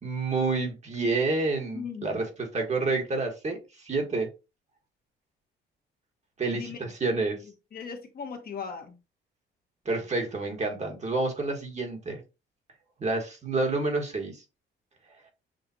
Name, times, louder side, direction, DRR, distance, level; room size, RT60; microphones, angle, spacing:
voice 1, 0.0-4.3 6.4-7.4 9.8-12.2 13.0-14.4, right 3 dB, 35° right, 3 dB, 1.5 m, -29 dB
voice 2, 1.7-2.3 6.5-6.8 7.7-9.0, left 6 dB, 50° left, 4 dB, 1.2 m, -38 dB
6.6 x 2.5 x 2.7 m, 0.28 s
cardioid pair, 90°, 20 cm